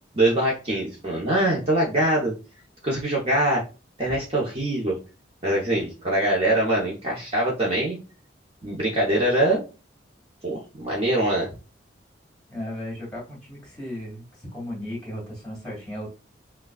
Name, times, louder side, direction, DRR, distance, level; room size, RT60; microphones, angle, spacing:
voice 1, 0.1-2.3 2.8-3.6 4.0-5.0 5.4-8.0 8.6-9.6 10.4-11.5, right 1 dB, 30° right, -4 dB, 0.9 m, -23 dB
voice 2, 12.5-16.1, left 1 dB, 5° left, -4 dB, 2.2 m, -35 dB
6.0 x 2.3 x 2.4 m, 0.33 s
head